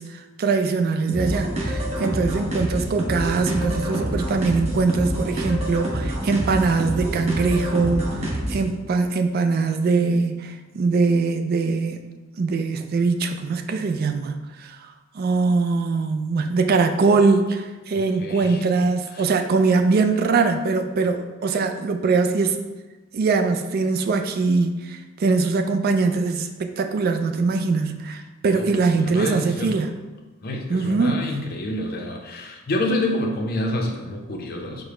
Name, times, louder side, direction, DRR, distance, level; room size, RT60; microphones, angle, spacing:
voice 1, 0.0-12.1 12.4-22.6 23.1-29.9 30.7-31.2, right 4 dB, 45° right, 6 dB, 0.3 m, -22 dB
sound 1, 1.1-8.7, right 1 dB, 30° right, 0.8 m, -27 dB
voice 2, 18.2-18.6 19.1-19.2 28.5-29.8 30.4-34.8, left 1 dB, 45° left, 2 dB, 0.5 m, -28 dB
4.9 x 2.1 x 4.8 m, 1.2 s
head